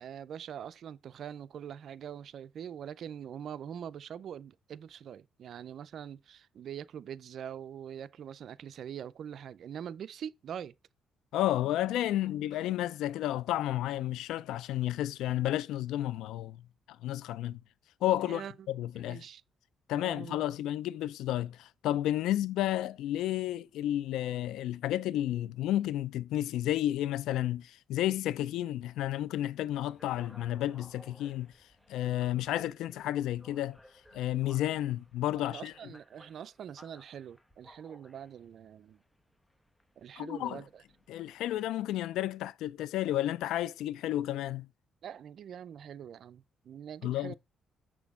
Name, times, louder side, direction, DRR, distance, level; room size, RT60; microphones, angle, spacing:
voice 1, 0.0-10.7 18.2-18.7 18.9-19.4 19.9-20.5 35.4-39.0 40.0-40.8 45.0-47.3, right 9 dB, 65° right, 0.4 m, -43 dB
voice 2, 11.3-16.6 17.0-17.6 18.0-19.2 19.9-31.5 31.9-33.8 34.1-35.7 40.2-40.6 41.1-44.7 47.0-47.3, left 13 dB, 90° left, 0.3 m, -31 dB
sound 1, 29.7-41.6, equal, 5° left, 1.0 m, -59 dB
6.8 x 6.0 x 3.6 m
cardioid pair, 90°, 0 cm